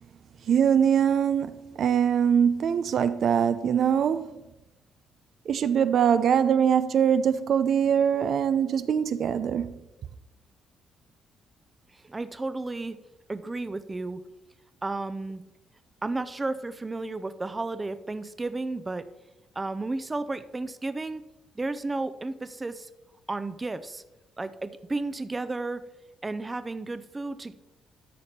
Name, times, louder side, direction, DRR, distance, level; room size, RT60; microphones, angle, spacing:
voice 1, 0.5-4.3 5.5-9.8, right 8 dB, 65° right, 0.5 m, -23 dB
voice 2, 11.9-13.0 13.3-14.2 14.8-15.4 16.0-19.1 19.6-21.2 21.5-22.9 23.3-24.0 24.4-25.8 26.2-27.5, right 2 dB, 20° right, 0.6 m, -33 dB
12.5 x 5.1 x 4.3 m
cardioid pair, 90°, 0 cm